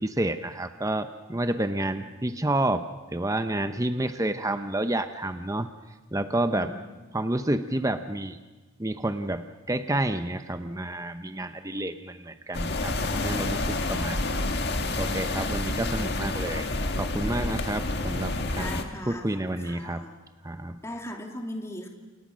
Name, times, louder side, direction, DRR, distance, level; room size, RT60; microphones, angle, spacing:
voice 1, 0.0-2.8 3.1-5.7 6.1-6.7 7.1-8.4 8.8-14.5 15.0-16.7 17.0-18.8 19.1-20.0 20.4-20.8, right 1 dB, 15° right, 9 dB, 0.8 m, -29 dB
sound 1, 12.5-18.8, left 2 dB, 50° left, 1.9 m, -29 dB
voice 2, 18.6-20.2 20.8-21.9, left 1 dB, 15° left, 2 dB, 2.5 m, -38 dB
28.5 x 27.5 x 6.3 m, 1.2 s
head